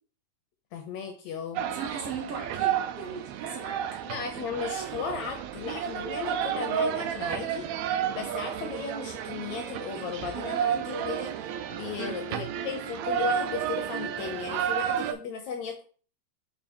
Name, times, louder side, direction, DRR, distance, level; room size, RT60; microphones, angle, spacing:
voice 1, 0.7-1.7 4.1-7.7 8.2-11.4 11.7-15.8, left 6 dB, 70° left, 4 dB, 1.8 m, -36 dB
sound 1, 1.5-15.1, right 9 dB, 85° right, 1.6 m, -31 dB
voice 2, 1.7-3.8 12.0-12.1, right 4 dB, 60° right, -1 dB, 2.0 m, -37 dB
4.9 x 4.7 x 5.2 m, 0.41 s
omnidirectional pair, 3.8 m